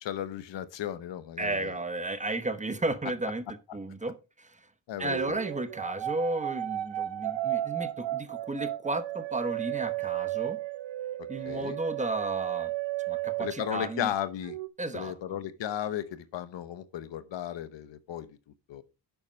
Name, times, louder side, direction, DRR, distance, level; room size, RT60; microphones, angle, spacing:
voice 1, 0.0-1.7 3.7-3.8 4.9-5.4 11.4-11.8 13.4-14.6 14.9-18.3 18.7-18.8, left 11 dB, 75° left, 1.0 m, -35 dB
voice 2, 1.4-4.6 5.0-10.6 11.3-12.7 13.1-14.1 14.8-15.1, right 2 dB, 15° right, 0.8 m, -33 dB
sound 1, 5.0-14.1 14.4-14.7, right 14 dB, 80° right, 0.7 m, -34 dB
10.5 x 7.2 x 3.2 m
cardioid pair, 120°, 44 cm